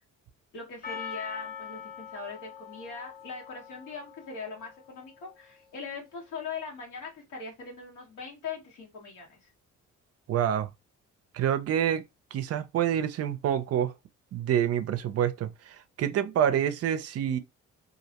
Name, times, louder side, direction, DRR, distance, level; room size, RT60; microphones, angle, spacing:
voice 1, 0.5-9.5, left 5 dB, 85° left, 1.2 m, -41 dB
Percussion, 0.8-5.1, left 8 dB, 30° left, 0.6 m, -43 dB
voice 2, 10.3-10.7 11.3-12.0 12.3-13.9 14.3-17.4, right 9 dB, 55° right, 0.4 m, -27 dB
2.5 x 2.0 x 2.8 m
cardioid pair, 90°, 30 cm